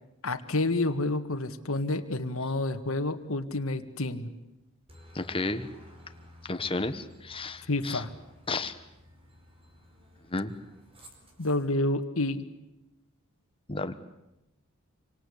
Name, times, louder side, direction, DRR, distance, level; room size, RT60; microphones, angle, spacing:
voice 1, 0.2-4.3 7.7-8.1 11.4-12.5, left 2 dB, 75° left, 7 dB, 1.9 m, -29 dB
Aircraft, 4.9-11.7, equal, 25° right, 4.8 m, -54 dB
voice 2, 5.1-5.7 6.4-8.0 8.5-8.8 10.3-10.6 13.7-13.9, left 3 dB, 25° left, 9 dB, 1.5 m, -32 dB
27.0 x 25.5 x 8.6 m, 0.92 s
head